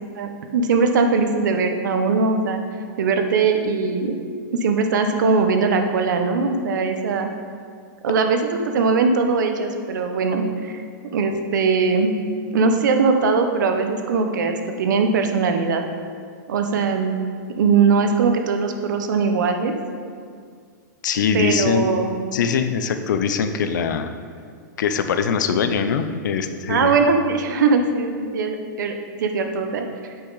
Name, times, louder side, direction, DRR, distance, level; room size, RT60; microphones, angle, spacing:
voice 1, 0.1-2.6 3.0-4.1 4.6-7.3 8.0-8.4 8.7-10.7 11.1-12.1 12.5-15.8 16.5-17.2 17.6-19.7 21.3-22.2 26.7-28.9 29.2-29.9, right 4 dB, 70° right, 5 dB, 0.9 m, -20 dB
voice 2, 21.0-21.9 22.3-24.1 24.8-27.0, left 6 dB, 70° left, 9 dB, 0.6 m, -22 dB
8.9 x 5.8 x 4.0 m, 2.1 s
supercardioid pair, 175°, 10 cm